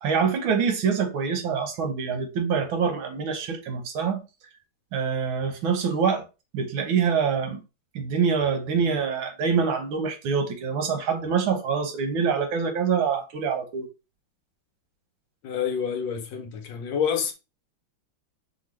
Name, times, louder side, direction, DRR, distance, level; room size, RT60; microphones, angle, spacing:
voice 1, 0.0-4.2 4.9-6.2 6.5-7.6 8.0-13.9, right 6 dB, 85° right, 1.8 m, -25 dB
voice 2, 15.4-17.3, left 7 dB, 75° left, 1.4 m, -28 dB
5.7 x 2.7 x 3.1 m
omnidirectional pair, 2.1 m